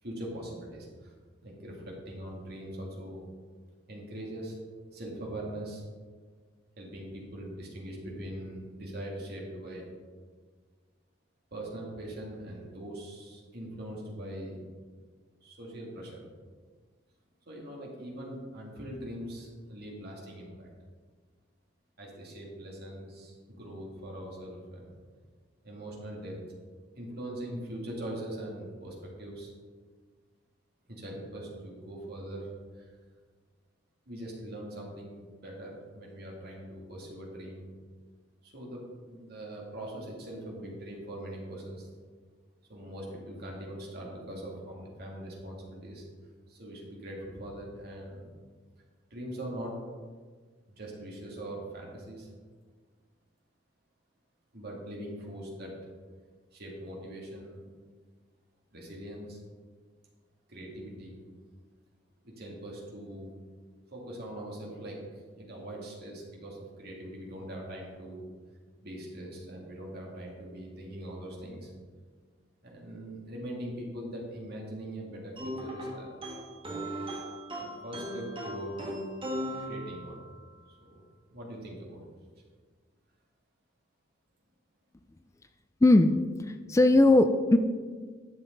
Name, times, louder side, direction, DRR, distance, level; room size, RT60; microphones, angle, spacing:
voice 1, 0.0-1.1 1.4-3.2 3.9-4.6 4.9-5.8 6.8-9.8 11.5-14.6 15.4-16.2 17.5-20.7 22.0-25.0 25.6-26.4 27.0-29.5 30.9-32.9 34.1-37.7 38.4-41.9 42.7-46.1 46.5-48.3 49.1-49.8 50.7-52.3 54.5-55.7 56.5-57.6 58.7-59.4 60.5-61.2 62.2-63.3 63.9-68.3 68.8-71.7 72.6-76.2 77.6-78.8 79.6-80.2 80.7-81.0 81.3-82.0, right 1 dB, 55° right, -2 dB, 2.4 m, -42 dB
sound 1, 75.4-80.4, equal, 30° right, 1.5 m, -38 dB
voice 2, 85.8-87.6, left 2 dB, 15° left, 8 dB, 0.3 m, -20 dB
11.5 x 7.0 x 3.9 m, 1.5 s
head